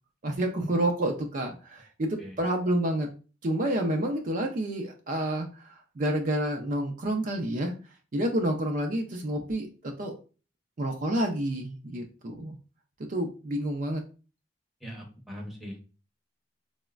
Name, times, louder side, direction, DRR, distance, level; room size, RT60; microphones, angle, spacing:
voice 1, 0.2-3.1 3.4-7.7 8.1-10.1 10.8-12.6 13.1-14.0, right 1 dB, 45° right, 2 dB, 0.4 m, -29 dB
voice 2, 14.8-15.8, equal, ahead, -2 dB, 0.7 m, -41 dB
4.1 x 2.1 x 2.3 m, 0.34 s
head